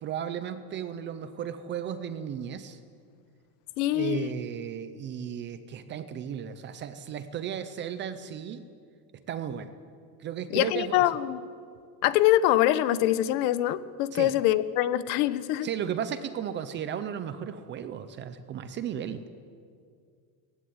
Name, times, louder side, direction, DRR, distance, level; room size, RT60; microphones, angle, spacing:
voice 1, 0.0-2.8 3.9-8.6 9.3-9.7 10.2-11.0 14.1-14.3 15.6-19.3, right 8 dB, 25° right, 11 dB, 0.5 m, -35 dB
voice 2, 3.8-4.3 10.5-11.4 12.0-15.7, left 13 dB, 65° left, 15 dB, 1.1 m, -24 dB
19.0 x 15.5 x 9.6 m, 2.2 s
cardioid pair, 175°, 49 cm